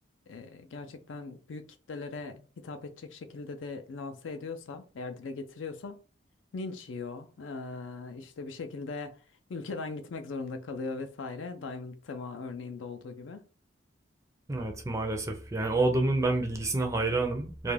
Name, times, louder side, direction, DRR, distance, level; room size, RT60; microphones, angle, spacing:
voice 1, 0.3-1.6 1.9-6.0 6.5-9.1 9.5-13.4, left 3 dB, 75° left, 0.4 m, -39 dB
voice 2, 14.5-17.7, right 2 dB, 15° right, 0.4 m, -28 dB
2.4 x 2.1 x 3.2 m
head